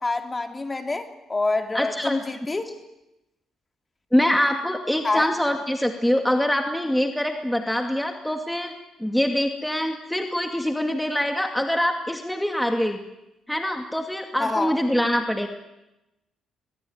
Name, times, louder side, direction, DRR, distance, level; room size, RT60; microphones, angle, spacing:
voice 1, 0.0-2.7 5.0-5.3 14.4-14.8, left 3 dB, 25° left, 6 dB, 3.0 m, -26 dB
voice 2, 1.7-2.2 4.1-8.7 9.0-13.0 13.5-15.5, equal, 5° left, 4 dB, 2.3 m, -24 dB
22.0 x 21.5 x 9.5 m, 0.94 s
cardioid pair, 90°, 0 cm